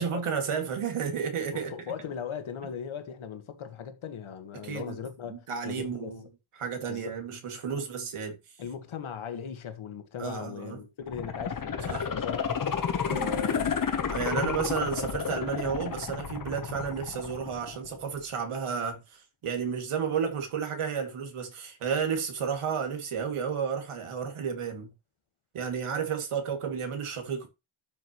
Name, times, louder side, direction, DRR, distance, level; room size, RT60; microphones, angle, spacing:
voice 1, 0.0-1.7 4.6-4.9 5.3-6.2 6.6-8.4 10.2-10.8 11.9-12.1 13.1-13.3 14.1-24.9 25.5-27.5, right 6 dB, 85° right, 2.5 m, -32 dB
voice 2, 1.5-6.2 6.9-7.1 8.6-12.5 13.0-13.8 14.3-14.6, left 7 dB, 70° left, 1.7 m, -38 dB
sound 1, 11.0-18.0 18.4-18.5, left 6 dB, 40° left, 1.1 m, -31 dB
12.0 x 6.3 x 3.1 m
wide cardioid pair, 165°, 50 cm